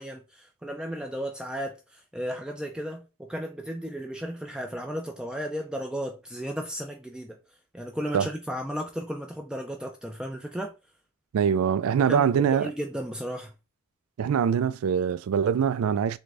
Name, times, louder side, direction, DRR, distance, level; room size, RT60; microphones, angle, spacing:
voice 1, 0.0-7.4 7.7-10.7 12.1-13.5, equal, 5° right, 0.4 m, -34 dB
voice 2, 11.3-12.7 14.2-16.2, right 7 dB, 90° right, 0.3 m, -23 dB
3.7 x 3.3 x 3.3 m
head